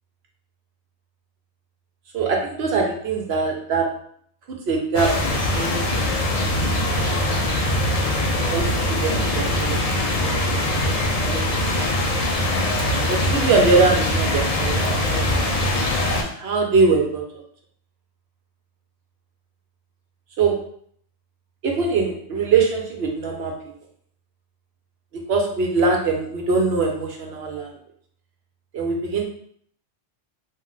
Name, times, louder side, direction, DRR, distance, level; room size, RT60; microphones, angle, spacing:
voice 1, 2.1-3.9 4.5-5.1 5.5-6.0 8.4-9.8 10.2-10.9 11.2-11.4 11.8-12.2 13.1-15.5 15.8-17.2 20.4-20.6 21.6-23.5 25.1-27.7 28.7-29.2, right 4 dB, 65° right, 1 dB, 0.8 m, -22 dB
sound 1, 4.9-16.2, left 1 dB, 70° left, 0.3 m, -22 dB
2.4 x 2.1 x 3.7 m, 0.63 s
omnidirectional pair, 1.2 m